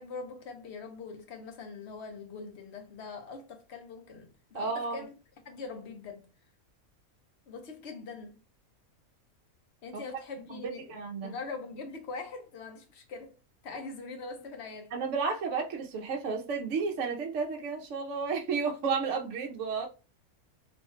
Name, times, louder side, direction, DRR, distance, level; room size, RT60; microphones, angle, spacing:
voice 1, 0.0-5.1 5.4-6.3 7.5-8.4 9.8-11.0 11.2-13.3 13.6-14.9, left 4 dB, 55° left, 1.0 m, -42 dB
voice 2, 4.5-5.0 10.5-11.3 14.9-19.9, right 5 dB, 65° right, 0.9 m, -32 dB
3.1 x 2.2 x 4.3 m
omnidirectional pair, 1.5 m